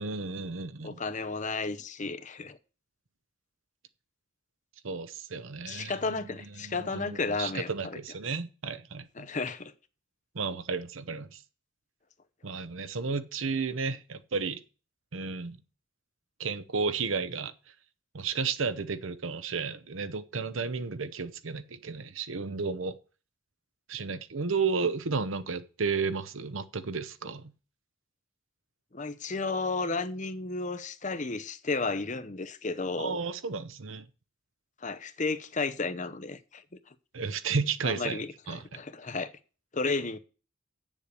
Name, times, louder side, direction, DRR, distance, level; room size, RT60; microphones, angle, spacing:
voice 1, 0.0-1.0 4.8-6.0 6.6-9.3 10.3-11.4 12.4-14.6 15.1-15.6 16.4-17.5 18.1-23.0 23.9-27.5 33.0-34.1 37.1-38.2 38.5-38.8, right 5 dB, 75° right, 0.8 m, -33 dB
voice 2, 0.8-2.6 5.7-8.0 9.2-9.7 28.9-33.2 34.8-36.6 37.8-39.3 39.7-40.2, left 3 dB, 35° left, 0.8 m, -33 dB
8.5 x 7.3 x 6.7 m
head